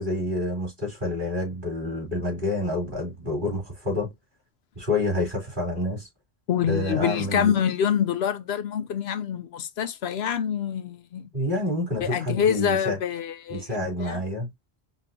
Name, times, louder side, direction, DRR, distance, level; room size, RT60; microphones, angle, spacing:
voice 1, 0.0-4.1 4.8-6.1 6.7-7.5 11.3-13.0 13.5-14.5, left 1 dB, 50° right, 3.5 m, -28 dB
voice 2, 6.5-11.3 12.0-13.7 14.0-14.2, left 8 dB, 80° left, 0.9 m, -26 dB
5.2 x 3.2 x 2.7 m
omnidirectional pair, 1.1 m